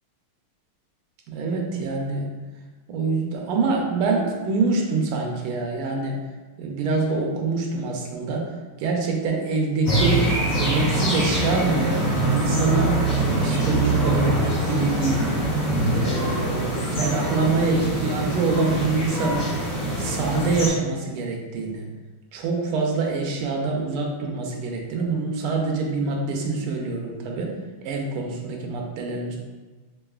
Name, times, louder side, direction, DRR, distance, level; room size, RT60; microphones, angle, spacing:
voice 1, 1.3-2.3 2.9-6.2 6.6-8.5 8.8-12.0 12.3-13.0 13.3-15.4 15.9-19.5 20.0-21.9 22.3-27.5 27.8-29.4, right 3 dB, 85° right, 1 dB, 1.5 m, -25 dB
sound 1, 9.9-20.7, right 1 dB, 45° left, 0.9 m, -24 dB
3.9 x 3.5 x 2.3 m, 1.2 s
omnidirectional pair, 2.4 m